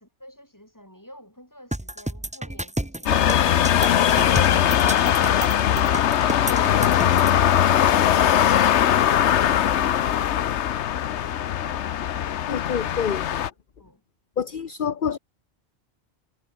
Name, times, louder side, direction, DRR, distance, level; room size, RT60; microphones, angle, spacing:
voice 1, 0.0-5.8, equal, 15° left, 8.0 m, -51 dB
sound 1, 1.7-7.3, right 1 dB, 5° right, 1.0 m, -30 dB
sound 2, 3.1-13.5, left 10 dB, 85° left, 1.1 m, -20 dB
voice 2, 12.5-13.2 14.4-15.2, left 7 dB, 50° left, 1.1 m, -27 dB
omnidirectional pair, 1.1 m